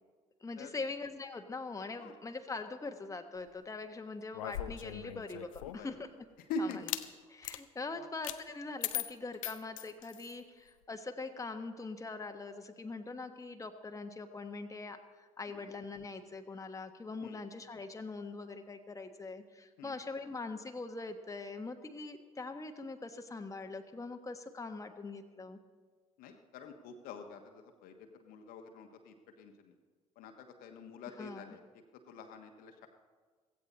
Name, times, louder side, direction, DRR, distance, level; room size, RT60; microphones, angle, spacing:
voice 1, 0.4-6.1 6.6-6.7 7.3-25.6 31.2-31.5, left 3 dB, 20° left, 6 dB, 1.3 m, -43 dB
sound 1, 4.3-5.9 6.7-7.1 7.4-7.6 8.2-8.4 8.8-10.4, left 13 dB, 75° left, 0.6 m, -39 dB
voice 2, 26.2-29.7 30.2-31.6 32.1-32.9, left 3 dB, 60° left, 5 dB, 1.3 m, -44 dB
16.0 x 16.0 x 4.2 m, 1.5 s
figure-of-eight pair, 50°, 17 cm